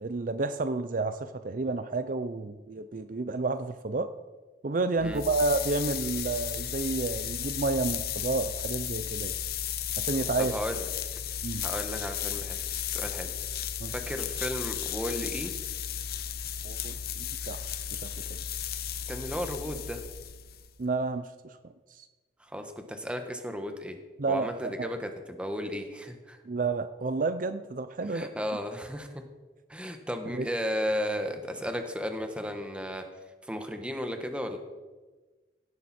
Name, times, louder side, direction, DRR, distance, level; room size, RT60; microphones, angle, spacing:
voice 1, 0.0-4.1 4.6-9.3 10.0-10.6 11.4-11.6 13.8-13.9 16.6-18.4 20.8-22.1 24.2-24.9 26.5-28.3 30.3-30.5, right 3 dB, 50° right, 10 dB, 0.5 m, -31 dB
sound 1, 5.0-20.7, left 9 dB, 60° left, 0.7 m, -34 dB
voice 2, 10.4-10.9 11.6-12.6 12.9-13.3 13.9-15.5 19.1-20.0 22.4-24.0 24.3-26.4 28.0-29.2 29.7-33.0 33.4-34.6, equal, 5° right, 5 dB, 1.3 m, -34 dB
17.0 x 10.5 x 4.3 m, 1.3 s
head